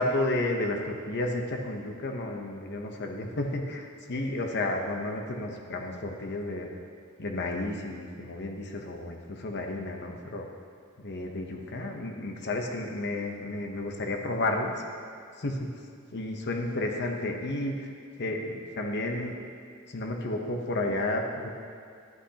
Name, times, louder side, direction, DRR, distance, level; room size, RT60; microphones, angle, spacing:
voice 1, 0.0-6.7 7.2-10.5 11.0-14.7 15.4-15.7 16.1-17.9 18.2-19.4 19.9-21.5, left 2 dB, 50° left, 2 dB, 0.9 m, -32 dB
12.0 x 8.5 x 2.9 m, 2.3 s
head